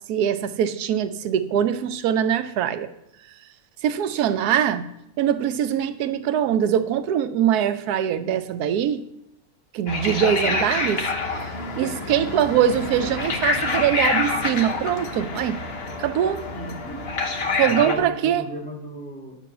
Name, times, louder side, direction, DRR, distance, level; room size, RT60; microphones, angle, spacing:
voice 1, 0.1-2.9 3.8-4.8 5.2-9.0 9.7-11.0 11.7-15.6 16.0-16.4 17.6-18.4, right 9 dB, 85° right, 11 dB, 1.2 m, -22 dB
sound 1, 9.9-18.0, left 3 dB, 45° left, 1.2 m, -27 dB
voice 2, 16.5-17.0 17.7-19.3, equal, 5° left, -3 dB, 1.9 m, -35 dB
10.0 x 6.0 x 6.7 m, 0.81 s
omnidirectional pair, 1.6 m